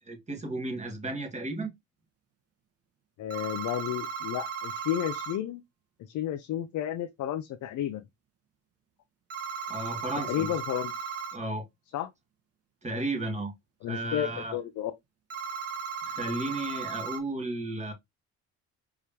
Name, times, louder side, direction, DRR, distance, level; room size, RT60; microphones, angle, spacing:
voice 1, 0.1-1.7 9.7-10.6 11.3-11.7 12.8-13.5 13.9-14.6 16.0-17.9, right 2 dB, 25° right, 2.0 m, -34 dB
voice 2, 3.2-5.6 6.0-8.0 10.2-10.9 11.9-12.1 13.8-14.9, left 11 dB, 75° left, 0.7 m, -32 dB
sound 1, 3.3-5.4 9.3-11.4 15.3-17.2, right 6 dB, 50° right, 1.1 m, -36 dB
4.9 x 3.4 x 2.8 m
cardioid pair, 90°, 30 cm